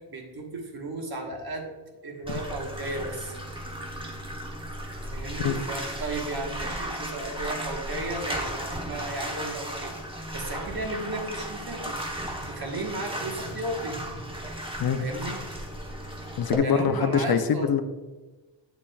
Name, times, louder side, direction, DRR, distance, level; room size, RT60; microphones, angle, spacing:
voice 1, 0.1-1.7 2.0-3.4 5.0-9.9 10.3-12.0 12.5-14.0 14.3-14.4 15.0-15.4 16.6-17.7, right 2 dB, 55° right, 2 dB, 1.3 m, -34 dB
Bathtub (filling or washing), 2.3-16.6, right 1 dB, 10° right, 0.9 m, -35 dB
voice 2, 16.4-17.8, left 7 dB, 55° left, 9 dB, 0.5 m, -24 dB
8.4 x 7.1 x 2.3 m, 1.2 s
wide cardioid pair, 115°, 44 cm